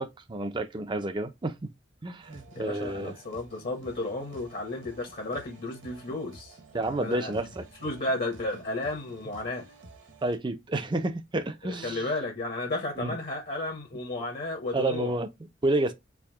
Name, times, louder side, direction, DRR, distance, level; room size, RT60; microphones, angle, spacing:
voice 1, 0.0-1.7 2.0-3.1 6.7-7.6 10.2-12.0 13.0-13.2 14.7-15.3 15.6-15.9, right 2 dB, 25° right, 0.5 m, -30 dB
sound 1, 2.2-10.4, right 2 dB, 70° right, 1.2 m, -52 dB
voice 2, 2.5-7.5 7.8-9.7 11.6-15.2, left 2 dB, 50° left, 1.2 m, -33 dB
4.8 x 2.2 x 3.4 m
head